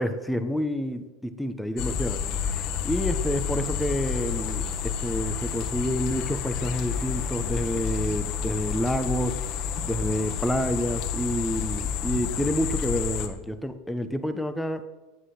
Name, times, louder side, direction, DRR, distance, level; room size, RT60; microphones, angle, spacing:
voice 1, 0.0-2.2 2.8-9.4 9.8-14.9, equal, 5° left, 9 dB, 1.1 m, -28 dB
sound 1, 1.8-13.3, left 7 dB, 55° left, 1.6 m, -30 dB
10.0 x 8.1 x 7.9 m, 1.1 s
hypercardioid pair, 90°, 0 cm